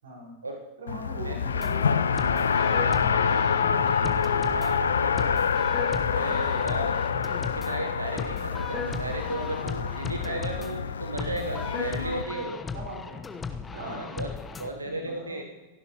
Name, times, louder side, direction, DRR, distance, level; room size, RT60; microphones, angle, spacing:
voice 1, 0.0-0.4 0.8-5.0 6.5-6.9 10.0-10.2 12.7-13.2 13.7-14.3 14.7-15.4, right 1 dB, 65° right, -2 dB, 4.4 m, -42 dB
Race car auto racing, 0.9-12.2, left 6 dB, 70° left, 0.5 m, -27 dB
sound 1, 1.5-14.7, left 5 dB, 15° left, 1.0 m, -37 dB
voice 2, 4.5-5.5 6.1-7.0 7.4-12.6 13.7-14.3 14.6-15.4, right 2 dB, 80° right, 5 dB, 1.0 m, -35 dB
28.5 x 11.0 x 3.0 m, 1.3 s
figure-of-eight pair, 90°, 0 cm